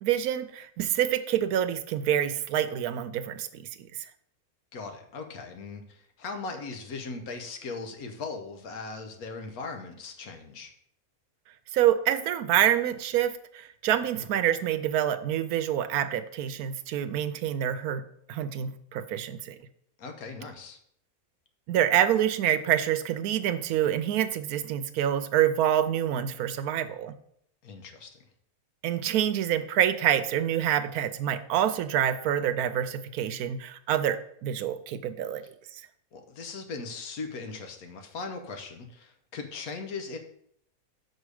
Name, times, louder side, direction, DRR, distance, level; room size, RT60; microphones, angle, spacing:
voice 1, 0.0-3.9 11.7-18.0 18.3-19.6 21.7-27.1 28.8-35.4 35.7-35.8, right 10 dB, 85° right, 11 dB, 1.1 m, -27 dB
voice 2, 4.7-10.7 20.0-20.8 27.6-28.1 36.1-40.2, left 4 dB, 80° left, 5 dB, 1.4 m, -39 dB
6.4 x 4.6 x 4.8 m, 0.69 s
omnidirectional pair, 1.5 m